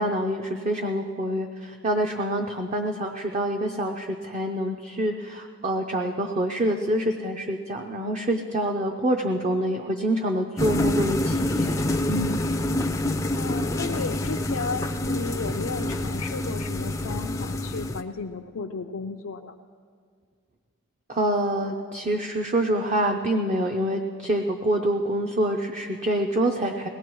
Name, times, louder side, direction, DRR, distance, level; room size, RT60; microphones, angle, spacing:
voice 1, 0.0-11.8 12.1-12.4 21.1-26.9, right 1 dB, 30° right, 3 dB, 0.6 m, -26 dB
sound 1, 10.6-18.0, left 1 dB, 15° left, 0.4 m, -27 dB
voice 2, 13.4-19.6, left 4 dB, 70° left, 2 dB, 0.5 m, -34 dB
21.5 x 18.0 x 3.1 m, 2.1 s
head